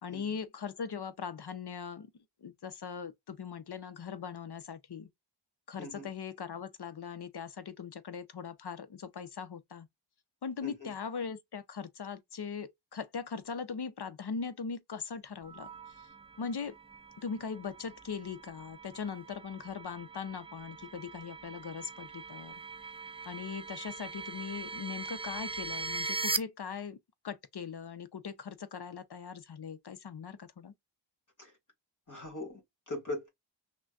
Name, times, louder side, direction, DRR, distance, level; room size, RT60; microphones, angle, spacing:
voice 1, 0.0-2.1 2.4-5.1 5.7-9.9 10.4-15.7 16.4-16.7 17.2-22.5 23.3-27.0 27.2-30.7, left 6 dB, 60° left, 0.7 m, -40 dB
voice 2, 5.8-6.1 10.6-10.9 31.4-31.5 32.1-33.3, left 2 dB, 45° left, 1.7 m, -40 dB
sound 1, 15.4-26.4, right 3 dB, 15° right, 0.3 m, -41 dB
6.0 x 2.2 x 2.3 m
wide cardioid pair, 60°, 44 cm